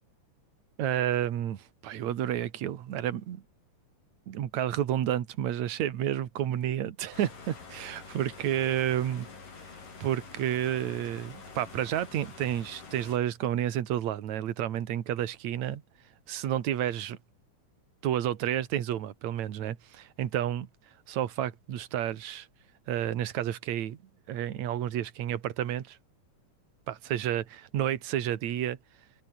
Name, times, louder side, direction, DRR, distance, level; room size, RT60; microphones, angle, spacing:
voice 1, 0.8-3.4 4.3-9.3 10.0-15.8 16.3-17.2 18.0-20.7 21.1-22.5 22.9-24.0 24.3-26.0 26.9-28.8, right 11 dB, 60° right, 2.8 m, -30 dB
sound 1, 7.1-13.2, left 4 dB, 80° left, 7.3 m, -47 dB
omnidirectional pair, 3.8 m